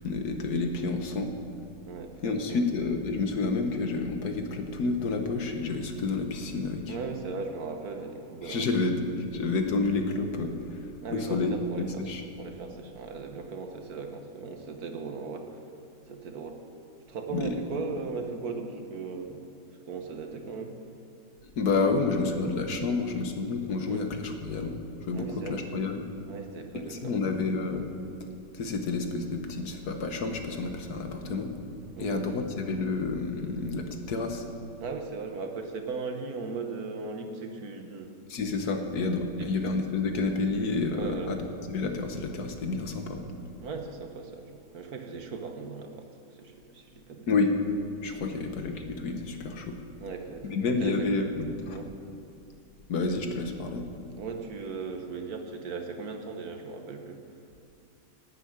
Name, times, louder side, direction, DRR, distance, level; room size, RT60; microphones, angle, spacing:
voice 1, 0.0-1.3 2.2-7.0 8.4-9.0 9.3-10.9 11.1-12.2 17.3-17.5 21.6-26.1 26.9-27.9 28.5-31.5 32.0-34.4 38.3-43.3 47.3-47.5 48.0-49.8 50.4-51.8 52.9-53.9, left 3 dB, 65° left, 5 dB, 1.6 m, -29 dB
voice 2, 1.8-2.6 6.9-8.7 11.0-12.1 12.4-15.6 16.1-16.6 17.1-19.4 19.9-20.8 22.1-22.5 22.8-22.9 23.9-24.1 25.1-25.6 26.3-27.1 32.0-32.3 34.8-38.2 39.4-39.7 41.0-41.3 43.6-46.1 46.3-47.3 48.2-48.5 50.0-50.9 51.7-51.9 54.2-57.2, right 4 dB, 60° right, 4 dB, 1.5 m, -38 dB
12.0 x 8.4 x 8.8 m, 2.5 s
omnidirectional pair, 1.9 m